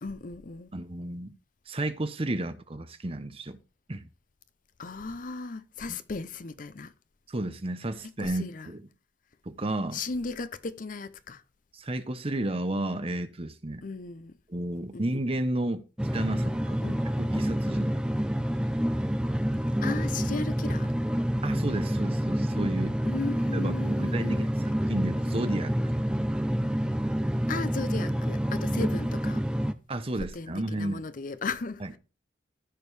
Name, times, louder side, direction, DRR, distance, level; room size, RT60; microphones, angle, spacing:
voice 1, 0.0-0.7 4.8-6.9 8.0-8.7 9.9-11.4 13.8-14.4 14.9-15.2 16.8-17.0 19.8-20.9 23.0-24.5 27.5-29.5 30.1-32.0, left 3 dB, 45° left, 0.6 m, -36 dB
voice 2, 0.7-1.3 1.7-3.6 3.9-4.1 7.3-8.8 9.5-10.0 11.7-13.8 14.5-15.8 16.1-17.9 21.4-23.0 23.5-23.7 24.0-24.4 24.9-25.7 29.9-31.0, right 1 dB, 30° right, 0.8 m, -32 dB
sound 1, 16.0-29.7, equal, 5° right, 0.5 m, -28 dB
15.0 x 5.2 x 3.3 m
head